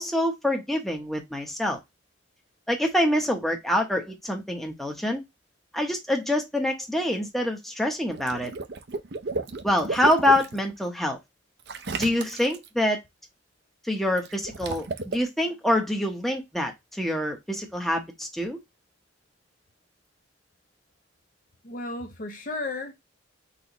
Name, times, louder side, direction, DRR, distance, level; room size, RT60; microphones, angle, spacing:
voice 1, 0.0-1.8 2.7-5.2 5.7-8.5 9.6-11.2 12.0-13.0 13.8-18.6, left 1 dB, ahead, 0.8 m, -26 dB
Water / Liquid, 8.1-10.6 11.7-12.7 14.2-15.2, right 3 dB, 55° right, 0.6 m, -33 dB
voice 2, 21.6-22.9, left 2 dB, 40° left, 0.6 m, -33 dB
4.1 x 4.1 x 2.9 m
head